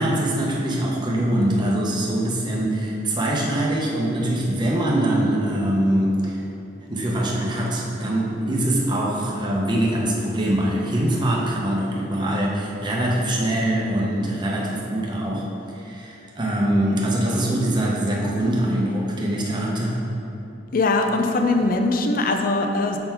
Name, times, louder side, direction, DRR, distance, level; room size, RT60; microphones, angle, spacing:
voice 1, 0.0-6.4 6.9-15.5 15.7-20.0, right 1 dB, 25° right, -3 dB, 0.8 m, -23 dB
voice 2, 20.7-23.0, left 2 dB, 45° left, 4 dB, 0.5 m, -21 dB
6.8 x 3.8 x 4.5 m, 2.9 s
head